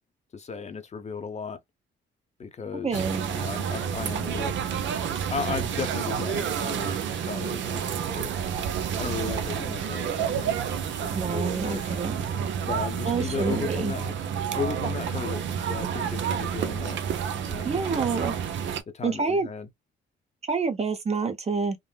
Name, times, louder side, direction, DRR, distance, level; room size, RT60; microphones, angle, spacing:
voice 1, 0.3-1.6 2.4-4.6 5.3-8.4 9.0-12.0 12.6-14.1 14.5-17.0 17.5-18.3 18.9-19.7, left 5 dB, 35° left, 0.8 m, -36 dB
voice 2, 2.8-3.3 11.1-12.2 13.0-13.9 17.6-18.3 19.0-19.5 20.4-21.8, right 4 dB, 30° right, 0.8 m, -27 dB
sound 1, 2.9-18.8, right 8 dB, 70° right, 0.7 m, -29 dB
3.7 x 2.0 x 2.3 m
cardioid pair, 90°, 20 cm